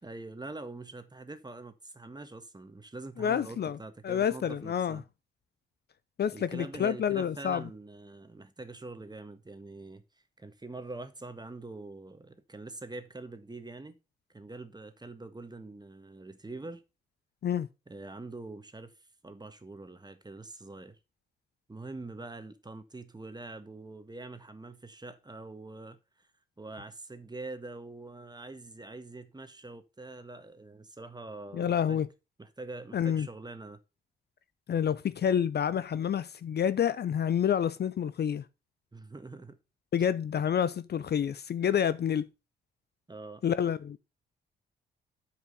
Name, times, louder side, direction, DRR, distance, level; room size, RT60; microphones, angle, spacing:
voice 1, 0.0-5.0 6.3-10.0 10.4-14.0 14.3-16.8 17.9-18.9 19.2-21.0 21.7-26.3 26.6-32.0 32.4-33.8 38.9-39.6 43.1-43.4, right 2 dB, 20° right, 1.5 m, -44 dB
voice 2, 3.2-3.8 4.0-5.0 6.2-7.6 17.4-17.7 31.5-32.1 32.9-33.3 34.7-38.4 39.9-42.3 43.4-44.0, left 8 dB, 50° left, 0.6 m, -28 dB
8.2 x 4.8 x 5.5 m
supercardioid pair, 50°, 21 cm